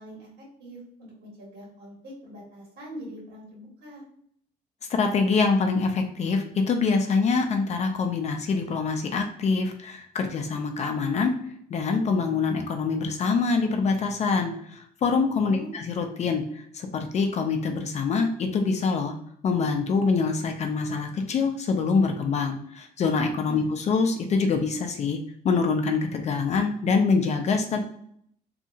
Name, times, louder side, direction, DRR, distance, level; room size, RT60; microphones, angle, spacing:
voice 1, 0.0-4.0 15.4-15.8 23.4-23.7, equal, 70° right, -4 dB, 1.5 m, -43 dB
voice 2, 4.9-11.3 11.7-16.9 17.1-19.1 19.4-25.2 25.4-27.8, left 4 dB, 40° left, 5 dB, 0.4 m, -25 dB
2.8 x 2.3 x 2.6 m, 0.66 s
cardioid pair, 110°, 17 cm